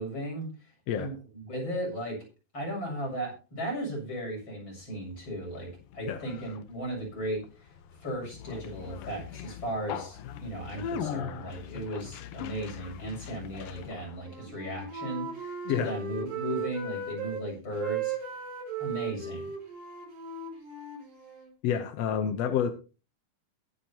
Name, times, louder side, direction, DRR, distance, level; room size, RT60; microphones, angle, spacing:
voice 1, 0.0-2.2 2.5-5.7 5.9-7.7 8.0-18.1 18.8-19.5, right 1 dB, 35° left, -1 dB, 8.3 m, -36 dB
Conversation, 4.8-14.3, left 8 dB, 90° left, 2.7 m, -41 dB
Wind instrument woodwind instrument, 14.1-17.4 17.7-21.5, right 5 dB, 90° right, 5.8 m, -37 dB
voice 2, 21.6-22.7, left 8 dB, 65° left, 8 dB, 1.7 m, -28 dB
22.0 x 8.3 x 2.9 m, 0.34 s
omnidirectional pair, 3.9 m